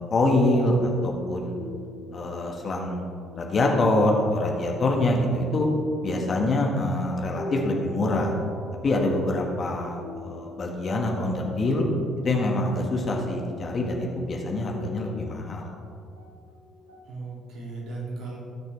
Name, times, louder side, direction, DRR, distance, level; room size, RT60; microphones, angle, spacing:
voice 1, 0.0-1.5 2.1-3.0 3.4-5.7 6.0-8.3 8.8-11.9 12.2-15.7, left 2 dB, 40° left, 0 dB, 2.0 m, -25 dB
sound 1, 0.6-12.6 13.5-13.6 13.9-17.0, equal, 90° right, 1.9 m, -42 dB
voice 2, 5.1-5.5 17.0-18.4, right 3 dB, 60° right, -3 dB, 2.7 m, -37 dB
18.5 x 6.5 x 3.6 m, 2.3 s
figure-of-eight pair, 50°, 0 cm